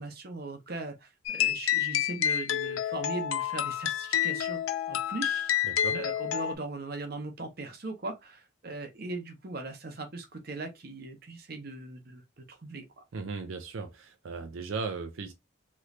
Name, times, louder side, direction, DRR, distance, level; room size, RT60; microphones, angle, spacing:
voice 1, 0.0-4.6 4.9-5.5 5.9-12.2 12.5-13.0, right 3 dB, 50° right, 0.8 m, -39 dB
sound 1, 1.3-6.6, left 10 dB, 85° left, 0.4 m, -29 dB
voice 2, 5.6-6.0 13.1-15.3, right 4 dB, 75° right, 0.5 m, -37 dB
3.2 x 3.0 x 2.5 m
head